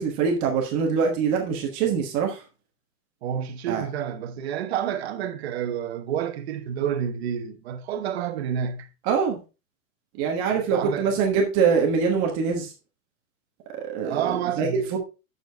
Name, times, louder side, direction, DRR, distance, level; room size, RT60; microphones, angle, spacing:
voice 1, 0.0-2.4 3.7-3.9 9.0-9.4 10.1-12.7 13.7-15.0, right 6 dB, 25° right, 1.2 m, -24 dB
voice 2, 3.2-8.9 10.5-11.2 14.0-14.8, right 9 dB, 45° right, 1.1 m, -29 dB
9.0 x 6.8 x 3.4 m
supercardioid pair, 180°, 43 cm